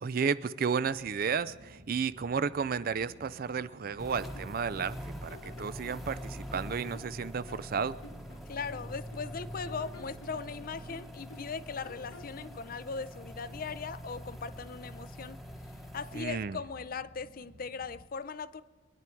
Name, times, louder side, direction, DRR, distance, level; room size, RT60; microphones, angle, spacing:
voice 1, 0.0-8.0 16.1-16.6, right 6 dB, 45° right, 16 dB, 0.4 m, -32 dB
sound 1, 0.8-18.1, equal, 65° right, 1.3 m, -55 dB
sound 2, 3.9-4.9 5.3-7.2 7.5-9.3 9.7-11.6 11.8-12.7, left 1 dB, 90° left, 1.7 m, -52 dB
sound 3, 4.0-16.2, equal, ahead, 1.1 m, -44 dB
voice 2, 8.5-15.4 15.9-18.6, left 5 dB, 45° left, 15 dB, 0.5 m, -39 dB
23.0 x 11.0 x 4.6 m, 1.3 s
head